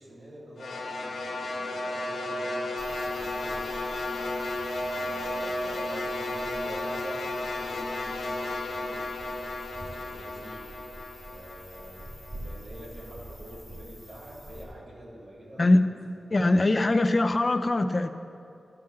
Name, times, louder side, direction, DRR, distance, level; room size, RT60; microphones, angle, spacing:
voice 1, 0.0-4.1 4.9-9.0 10.0-10.6 11.2-12.0 12.3-16.0, equal, 80° right, -8 dB, 3.0 m, -46 dB
sound 1, 0.6-12.8, left 2 dB, 90° left, 2.0 m, -33 dB
sound 2, 2.8-14.7, right 1 dB, 25° right, 2.5 m, -46 dB
voice 2, 16.3-18.1, left 2 dB, 35° left, 9 dB, 0.5 m, -22 dB
13.0 x 5.7 x 7.7 m, 2.8 s
wide cardioid pair, 90°, 0 cm